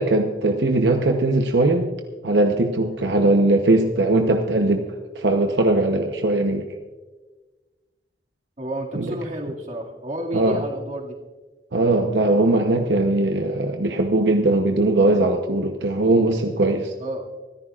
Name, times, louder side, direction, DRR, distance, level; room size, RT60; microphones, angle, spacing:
voice 1, 0.0-1.9 2.2-4.9 5.1-6.6 8.9-9.1 10.3-10.6 11.7-16.9, right 2 dB, 75° right, 4 dB, 0.9 m, -20 dB
voice 2, 8.6-11.2 17.0-17.3, right 1 dB, 40° right, -1 dB, 2.2 m, -31 dB
25.0 x 14.0 x 2.5 m, 1.3 s
head